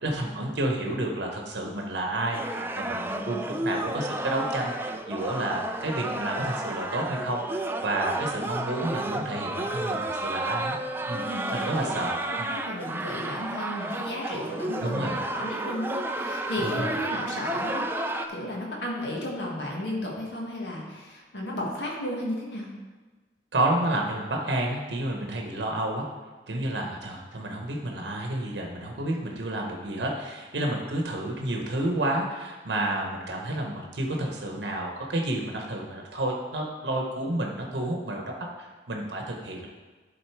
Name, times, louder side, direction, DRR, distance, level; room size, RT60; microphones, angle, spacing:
voice 1, 0.0-10.8 11.1-11.2 11.5-12.5 14.8-15.2 16.6-16.9 23.5-26.1 26.5-38.3 38.6-39.7, right 1 dB, 80° right, 0 dB, 0.9 m, -30 dB
sound 1, 2.3-18.3, right 2 dB, 10° right, 0.3 m, -32 dB
voice 2, 3.1-3.5 11.2-12.0 12.3-22.7, left 1 dB, 75° left, -3 dB, 1.6 m, -34 dB
11.0 x 3.9 x 4.6 m, 1.3 s
head